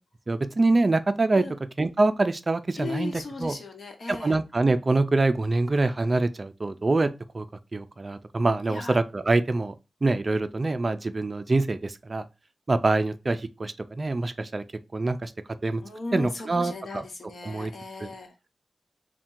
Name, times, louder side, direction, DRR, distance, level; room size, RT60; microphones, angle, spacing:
voice 1, 0.3-1.4 1.8-3.6 4.1-7.1 7.3-7.4 7.7-9.7 10.0-12.2 12.7-14.6 14.9-15.3 15.6-15.8 16.1-17.0 17.4-17.7 18.0-18.1, right 2 dB, 35° right, 0.3 m, -25 dB
voice 2, 2.8-4.4 8.7-9.0 15.8-18.3, left 3 dB, 65° left, 1.0 m, -36 dB
3.6 x 2.2 x 4.3 m
wide cardioid pair, 120°, 0 cm